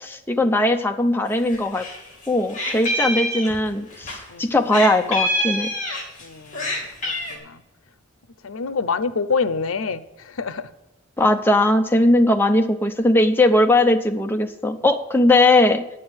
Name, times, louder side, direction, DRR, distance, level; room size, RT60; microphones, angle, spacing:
voice 1, 0.0-1.8 2.3-5.7 11.2-15.9, left 1 dB, 10° left, 5 dB, 0.6 m, -19 dB
Meow, 1.4-4.2 4.7-6.2 6.5-7.3, left 1 dB, 35° left, 2.9 m, -26 dB
voice 2, 6.2-7.6 8.4-10.7, left 5 dB, 85° left, 14 dB, 0.7 m, -27 dB
9.9 x 7.7 x 7.9 m, 0.97 s
head